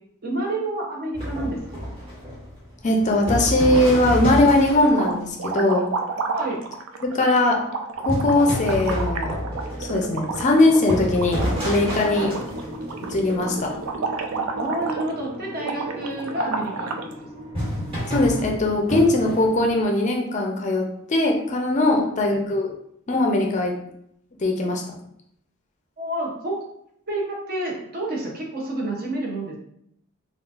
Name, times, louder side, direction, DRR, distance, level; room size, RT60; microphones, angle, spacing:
voice 1, 0.2-2.0 6.3-6.6 12.2-12.4 14.5-17.3 21.9-22.2 26.0-26.6 27.1-29.6, right 1 dB, 45° right, -1 dB, 0.7 m, -29 dB
sound 1, 1.1-5.1 8.1-13.8 17.5-19.7, equal, 25° right, 1.3 m, -29 dB
voice 2, 2.8-5.9 7.0-7.6 8.0-9.3 9.8-12.3 13.1-13.7 18.1-22.7 23.1-23.7 24.4-24.8, left 2 dB, 35° left, 1 dB, 0.4 m, -20 dB
sound 2, 3.4-4.1 4.4-17.1, right 4 dB, 70° right, 0.3 m, -31 dB
sound 3, 9.2-19.8, equal, 10° right, 1.0 m, -39 dB
3.8 x 2.4 x 2.4 m, 0.73 s
head